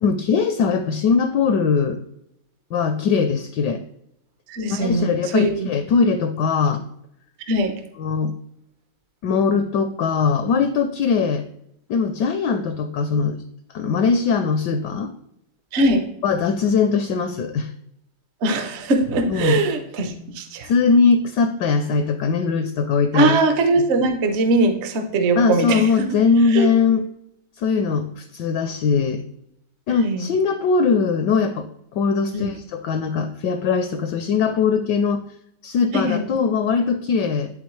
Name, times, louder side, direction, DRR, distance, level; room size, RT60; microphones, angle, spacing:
voice 1, 0.0-2.0 2.7-3.8 4.7-6.8 8.0-8.3 9.2-11.4 11.9-13.4 13.7-15.1 16.2-17.7 19.3-19.6 20.6-23.4 25.4-27.1 27.6-29.2 29.9-31.7 31.9-35.2 35.6-37.5, left 5 dB, 75° left, 9 dB, 1.0 m, -20 dB
voice 2, 4.5-5.7 7.5-7.7 15.7-16.0 18.4-20.7 23.1-26.2 26.5-26.7 30.0-30.3 32.3-32.6 35.9-36.3, right 2 dB, 55° right, 6 dB, 0.7 m, -21 dB
11.5 x 3.9 x 3.1 m, 0.76 s
omnidirectional pair, 2.3 m